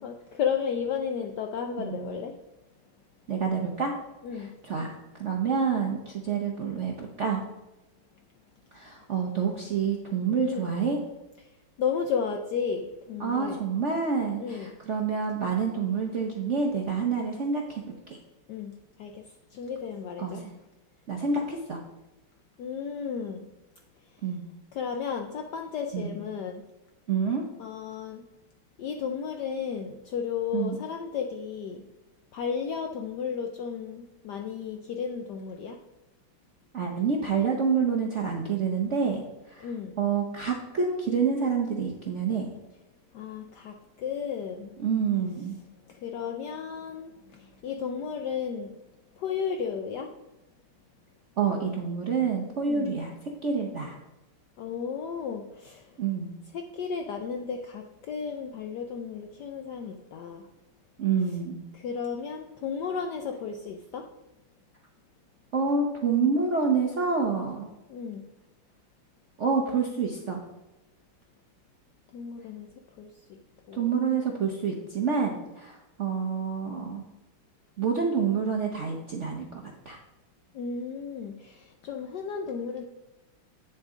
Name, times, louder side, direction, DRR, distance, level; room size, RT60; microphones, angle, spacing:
voice 1, 0.0-2.3 4.2-4.5 10.4-10.7 11.8-13.6 14.4-14.7 18.5-19.2 19.5-20.4 22.6-23.5 24.7-26.6 27.6-28.2 28.8-31.8 32.3-35.8 39.6-39.9 43.1-44.8 45.9-48.8 49.2-50.1 52.6-52.9 54.6-55.8 56.5-60.5 61.7-64.1 67.9-68.2 72.1-72.7 73.0-73.1 73.7-73.9 80.5-82.8, left 6 dB, 75° left, 4 dB, 0.9 m, -33 dB
voice 2, 1.8-2.2 3.3-3.9 4.3-4.9 5.2-7.4 8.7-11.0 13.2-17.8 18.1-18.2 20.2-20.5 21.1-21.8 24.2-24.4 25.9-26.1 27.1-27.4 30.5-30.8 36.7-42.5 44.8-45.6 51.4-53.1 53.4-54.0 56.0-56.4 61.0-61.6 65.5-67.7 69.4-70.4 73.7-77.0 77.8-80.0, right 5 dB, 60° right, 0 dB, 0.7 m, -28 dB
8.7 x 7.1 x 3.7 m, 1.0 s
omnidirectional pair, 2.4 m